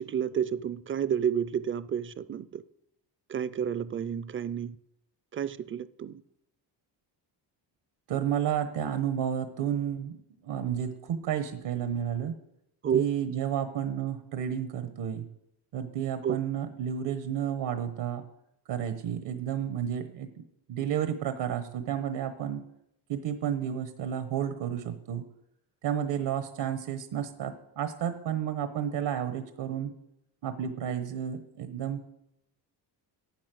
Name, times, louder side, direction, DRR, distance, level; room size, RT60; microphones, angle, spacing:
voice 1, 0.0-2.6 3.3-4.8 5.3-6.2 12.8-13.0 16.2-16.4, right 8 dB, 30° right, 0.5 m, -30 dB
voice 2, 8.1-10.2 10.4-12.4 12.9-15.2 15.7-18.2 18.7-22.6 23.1-25.2 25.8-29.9 30.4-32.1, right 9 dB, 75° right, 1.3 m, -31 dB
11.5 x 9.5 x 7.7 m
cardioid pair, 160°, 43 cm